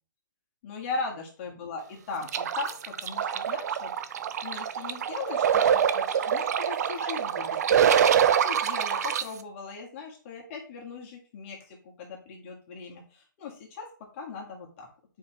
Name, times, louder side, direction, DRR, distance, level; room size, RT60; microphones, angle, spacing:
voice 1, 0.6-3.9 4.4-13.9 14.1-14.9, left 4 dB, 35° left, -1 dB, 1.6 m, -39 dB
sound 1, 2.3-9.2, right 8 dB, 55° right, 0.5 m, -25 dB
7.1 x 4.7 x 2.9 m, 0.39 s
hypercardioid pair, 135°, 11 cm